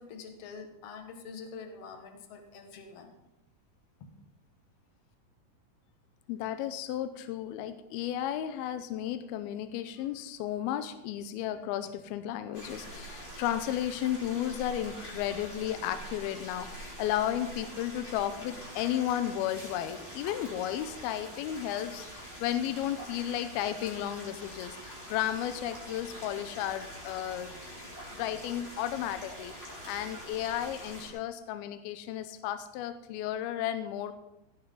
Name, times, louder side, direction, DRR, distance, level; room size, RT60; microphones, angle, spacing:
voice 1, 0.0-3.1 4.0-4.1, left 5 dB, 50° left, 4 dB, 2.2 m, -45 dB
voice 2, 6.3-27.5 28.1-34.2, left 11 dB, 85° left, 10 dB, 2.5 m, -33 dB
sound 1, 12.5-31.1, equal, 10° left, 5.0 m, -45 dB
16.5 x 11.0 x 3.9 m, 0.87 s
omnidirectional pair, 4.5 m